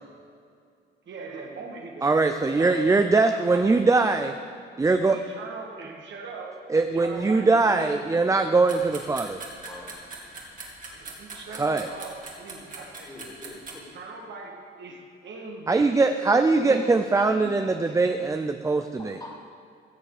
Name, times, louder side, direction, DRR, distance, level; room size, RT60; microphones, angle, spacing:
voice 1, 1.1-2.1 2.3-3.9 5.1-6.6 6.9-7.5 7.8-8.2 10.9-13.1 13.9-15.9 16.5-17.4, right 3 dB, 65° right, 0 dB, 1.9 m, -41 dB
voice 2, 2.0-4.3 4.8-5.2 6.7-9.4 11.5-11.9 15.7-19.2, right 3 dB, 15° right, 8 dB, 0.4 m, -22 dB
sound 1, 8.7-13.7, right 3 dB, 45° right, 2.2 m, -41 dB
voice 3, 13.0-14.0 17.8-18.0 19.0-19.5, left 1 dB, 20° left, -1 dB, 2.4 m, -44 dB
15.5 x 6.8 x 4.9 m, 2.3 s
cardioid pair, 90°, 20 cm